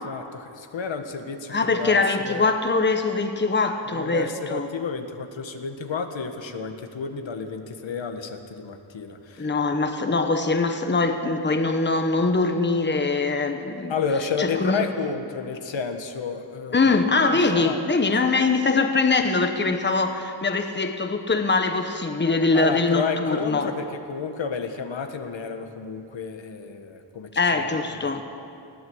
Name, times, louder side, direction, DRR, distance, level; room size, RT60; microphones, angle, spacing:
voice 1, 0.0-2.4 3.9-9.5 13.9-16.8 17.3-17.8 22.5-27.7 28.0-28.2, left 5 dB, 85° left, 6 dB, 1.6 m, -31 dB
voice 2, 1.5-4.7 9.4-13.9 14.4-14.8 16.7-23.7 27.3-28.2, left 3 dB, 25° left, 6 dB, 1.2 m, -22 dB
20.5 x 16.5 x 8.0 m, 2.6 s
wide cardioid pair, 145°, 44 cm